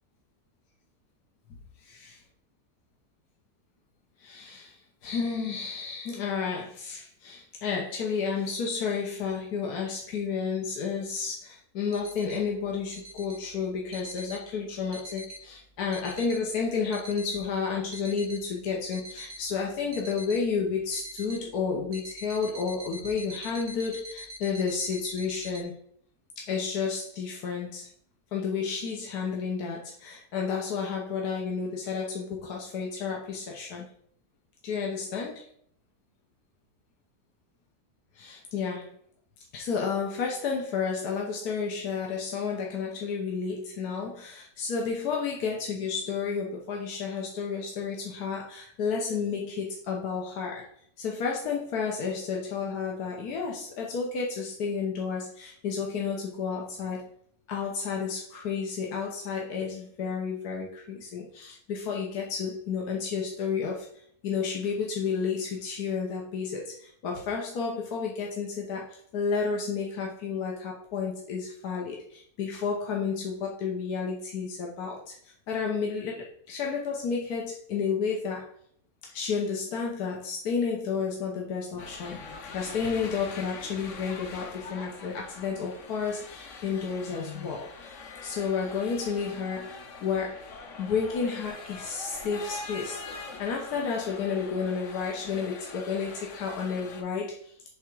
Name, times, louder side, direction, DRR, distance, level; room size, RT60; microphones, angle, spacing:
voice 1, 4.2-25.8 26.4-27.9 28.3-33.9 34.6-35.5 38.1-38.9 39.5-50.7 51.0-57.1 57.5-63.9 64.2-78.5 79.1-87.7 88.2-90.4 90.8-97.5, left 5 dB, 85° left, -1 dB, 1.5 m, -31 dB
sound 1, 11.9-12.4 12.9-13.4 13.9-14.4 14.9-15.4 15.9-16.4 16.9-17.4 17.9-18.4 18.9-19.4 19.9-20.4 20.9-21.4 21.9-25.6, equal, 90° right, 1.4 m, -43 dB
sound 2, 81.8-97.0, left 4 dB, 60° left, 1.1 m, -43 dB
7.1 x 3.6 x 4.6 m, 0.64 s
omnidirectional pair, 1.6 m